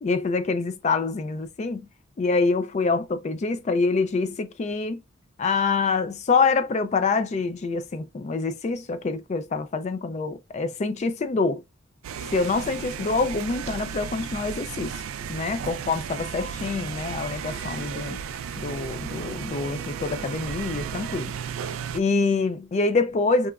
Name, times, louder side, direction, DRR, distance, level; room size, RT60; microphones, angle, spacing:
voice 1, 0.0-1.9 2.2-5.0 5.4-11.6 12.3-15.0 15.3-18.2 18.6-21.3 21.9-23.5, left 4 dB, 35° left, 0.3 m, -26 dB
sound 1, 12.0-22.0, right 7 dB, 75° right, 0.3 m, -34 dB
3.0 x 2.3 x 2.2 m
head